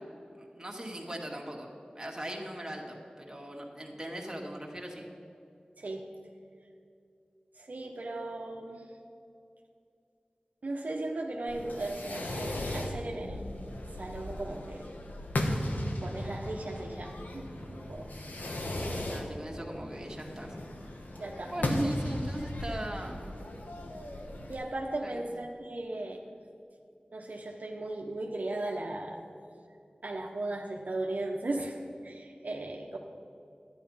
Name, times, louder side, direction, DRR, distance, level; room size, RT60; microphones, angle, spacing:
voice 1, 0.3-1.7 1.9-5.1 19.1-20.5 21.5-23.2 25.0-25.3, right 1 dB, 20° right, 0 dB, 2.0 m, -40 dB
voice 2, 5.8-6.1 7.5-8.9 10.6-13.4 14.0-14.8 16.0-18.1 21.2-21.9 24.5-26.2 27.1-29.2 30.0-33.0, right 2 dB, 70° right, 1 dB, 1.0 m, -37 dB
Fireworks, 11.5-24.5, left 1 dB, 80° left, 1.2 m, -36 dB
11.5 x 9.6 x 5.6 m, 2.5 s
wide cardioid pair, 50°, 3 cm